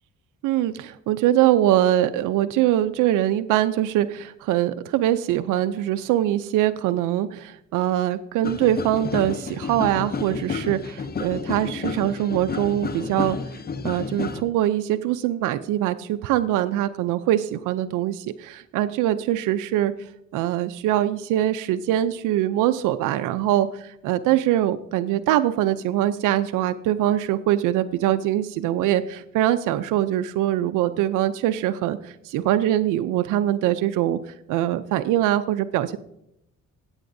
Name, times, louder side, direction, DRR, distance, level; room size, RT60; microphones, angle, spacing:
voice 1, 0.4-13.4 13.8-36.0, right 12 dB, 90° right, 11 dB, 0.5 m, -23 dB
sound 1, 8.4-14.4, left 5 dB, 30° left, 0.9 m, -31 dB
16.0 x 8.6 x 2.6 m, 0.81 s
cardioid pair, 90°, 30 cm